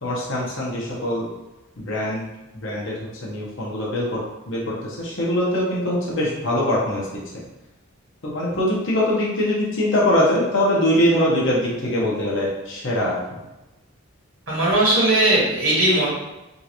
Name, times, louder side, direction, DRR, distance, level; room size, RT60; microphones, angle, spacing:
voice 1, 0.0-1.3 1.8-2.3 2.5-4.2 4.5-7.2 8.2-13.4, left 1 dB, 60° left, -5 dB, 1.0 m, -22 dB
voice 2, 14.5-16.1, right 1 dB, 60° right, -6 dB, 1.5 m, -18 dB
3.8 x 2.6 x 2.9 m, 1.0 s
head